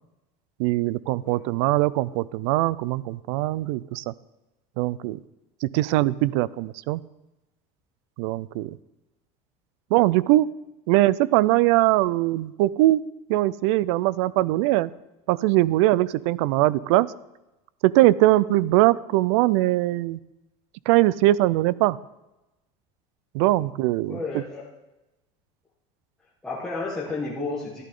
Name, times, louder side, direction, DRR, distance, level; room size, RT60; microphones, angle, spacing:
voice 1, 0.6-4.1 4.8-5.2 5.6-7.0 8.2-8.8 9.9-10.5 10.9-13.0 13.3-14.9 15.3-17.1 17.8-20.2 20.9-22.0 23.3-24.2, right 17 dB, 65° right, 20 dB, 0.4 m, -21 dB
voice 2, 24.0-24.6 26.4-27.8, left 3 dB, 5° left, -7 dB, 1.5 m, -31 dB
14.0 x 11.5 x 3.8 m, 0.99 s
cardioid pair, 175°, 16 cm